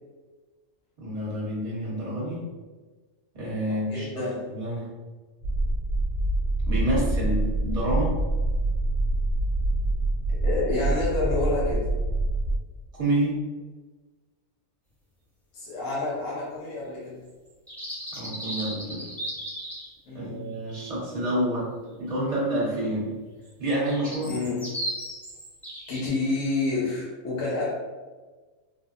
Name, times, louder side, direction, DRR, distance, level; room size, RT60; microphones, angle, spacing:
voice 1, 1.0-2.4 3.3-4.9 6.7-8.2 12.9-13.4 18.1-19.0 20.1-21.7 22.0-23.1 23.6-24.3, right 1 dB, 30° right, -6 dB, 1.0 m, -28 dB
voice 2, 3.7-4.4 10.4-11.9 15.5-17.2 20.1-20.4 24.3-24.8 25.9-27.7, left 3 dB, 75° left, -6 dB, 1.1 m, -29 dB
sound 1, 5.4-12.6, right 2 dB, 65° right, 0.8 m, -25 dB
sound 2, 17.5-19.9 23.5-26.1, right 1 dB, ahead, 0.5 m, -35 dB
3.3 x 2.0 x 2.5 m, 1.3 s
omnidirectional pair, 1.3 m